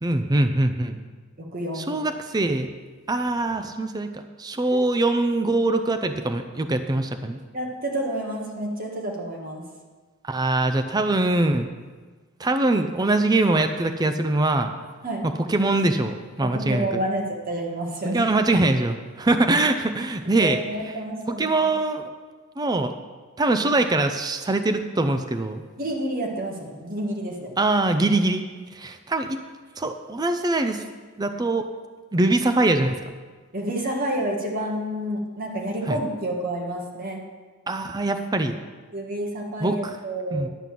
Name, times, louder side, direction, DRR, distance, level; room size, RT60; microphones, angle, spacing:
voice 1, 0.0-1.0 1.7-2.7 3.1-7.4 10.2-11.7 12.4-14.7 15.2-17.0 18.1-20.6 21.3-22.0 22.6-22.9 23.4-25.6 27.6-28.5 28.7-29.4 29.8-30.8 31.2-31.7 32.1-33.1 35.9-36.0 37.7-38.6 39.6-40.0 40.3-40.5, right 2 dB, 20° right, 7 dB, 0.5 m, -23 dB
voice 2, 1.4-2.0 4.7-4.8 7.5-9.6 15.0-15.3 16.4-18.2 20.4-21.7 25.8-27.6 33.5-37.2 38.9-40.5, right 1 dB, 40° right, 0 dB, 1.7 m, -29 dB
11.0 x 5.5 x 7.5 m, 1.4 s
head